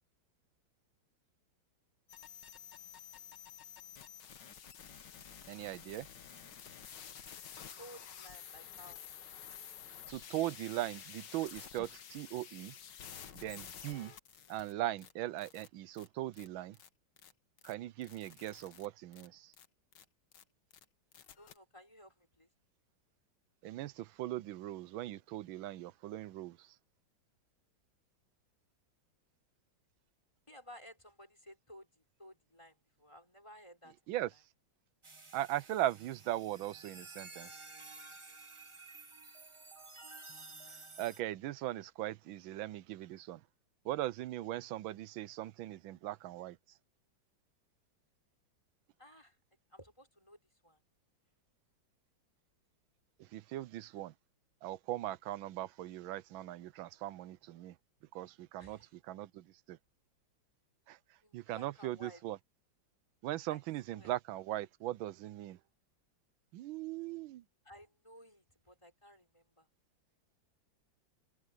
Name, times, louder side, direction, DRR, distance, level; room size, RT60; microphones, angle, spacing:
sound 1, 2.1-14.7 15.0-15.1 15.4-15.7 16.0-16.1 16.3-16.5 16.7-16.9 17.2-17.3 17.6-17.7 18.0-18.9 19.1-19.3 19.5-19.7 19.9-20.0 20.3-20.4 20.7-20.8 21.1-21.6, left 8 dB, 65° left, 1.9 m, -51 dB
voice 1, 5.5-6.1 10.1-12.7 13.3-14.1 14.5-16.8 17.6-19.5 23.6-26.7 34.1-34.3 35.3-37.6 41.0-43.4 43.8-46.6 53.2-54.1 54.6-57.7 58.1-58.8 59.0-59.8 60.9-61.0 61.3-62.4 63.2-65.6 66.5-67.4, right 14 dB, 85° right, 1.4 m, -39 dB
voice 2, 7.8-9.0 21.3-22.5 30.5-34.0 49.0-49.4 49.7-50.8 58.6-58.9 61.2-62.2 63.5-63.6 63.9-64.1 67.6-69.7, equal, 15° left, 5.2 m, -56 dB
sound 2, 35.0-41.2, right 3 dB, 20° right, 1.0 m, -52 dB
omnidirectional pair, 2.1 m